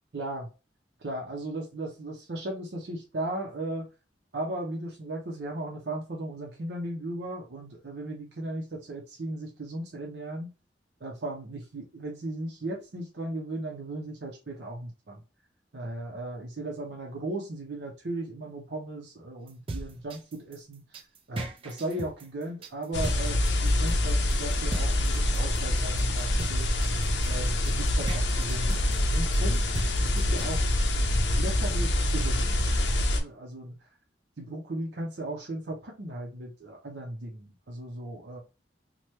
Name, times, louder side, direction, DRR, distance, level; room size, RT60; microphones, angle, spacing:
voice 1, 0.1-0.5 1.0-3.9 4.3-10.5 11.0-15.2 15.7-20.8 21.3-26.7 27.2-29.6 30.0-30.7 31.4-33.7 34.4-38.4, right 1 dB, 70° right, -1 dB, 0.7 m, -36 dB
sound 1, 19.5-30.5, right 2 dB, 30° right, 0.4 m, -38 dB
sound 2, 22.9-33.2, left 1 dB, 90° left, 0.5 m, -26 dB
3.0 x 2.2 x 3.1 m, 0.30 s
head